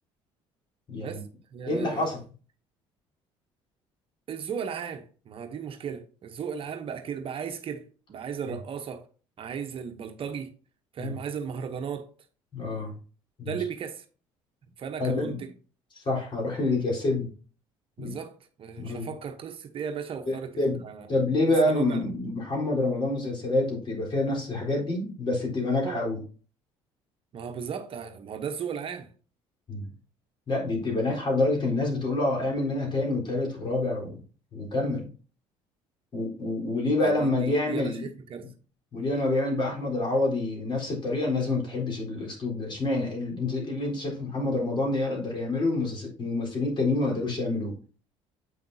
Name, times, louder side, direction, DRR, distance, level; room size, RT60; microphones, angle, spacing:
voice 1, 0.9-1.2 1.7-2.2 11.0-11.1 12.5-12.9 13.4-13.6 15.0-15.4 16.0-17.3 18.0-18.2 18.8-19.1 20.3-20.8 21.1-26.2 29.7-29.9 30.5-34.2 34.5-35.1 36.1-38.1 38.9-47.8, left 2 dB, 45° left, 3.9 m, -27 dB
voice 2, 1.5-2.1 4.3-9.0 9.4-10.5 10.9-12.1 12.8-12.9 13.5-14.0 14.8-15.5 18.0-18.3 18.6-21.1 21.5-22.0 25.8-26.0 27.3-29.1 37.0-38.5, right 7 dB, 50° right, 0.9 m, -36 dB
7.9 x 5.8 x 2.7 m
supercardioid pair, 80°, 12 cm